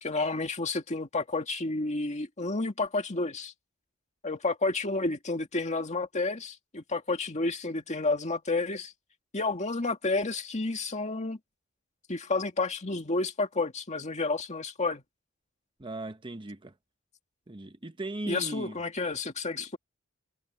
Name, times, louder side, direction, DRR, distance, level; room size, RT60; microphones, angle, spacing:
voice 1, 0.0-3.5 4.2-8.9 9.3-11.4 12.1-15.0 18.3-19.8, left 3 dB, 35° left, 2.0 m, -30 dB
voice 2, 15.8-16.7 17.5-18.8 19.6-19.7, right 2 dB, 25° right, 1.0 m, -38 dB
head